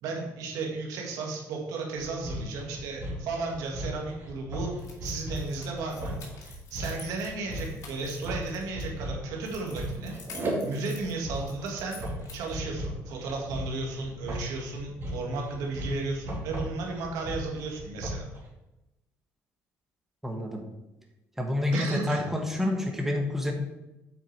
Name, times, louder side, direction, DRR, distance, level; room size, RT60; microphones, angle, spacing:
voice 1, 0.0-6.2 6.7-10.1 10.6-12.0 12.3-18.2 21.7-22.2, right 3 dB, 85° right, 0 dB, 1.7 m, -34 dB
sound 1, 2.0-18.4, right 1 dB, 45° right, 2.4 m, -36 dB
sound 2, 4.8-8.9 9.4-12.6, left 4 dB, 65° left, 2.0 m, -49 dB
voice 2, 20.2-20.6 21.4-23.5, left 1 dB, 5° right, 1 dB, 1.3 m, -28 dB
7.9 x 4.7 x 4.6 m, 0.97 s
cardioid pair, 95°, 6 cm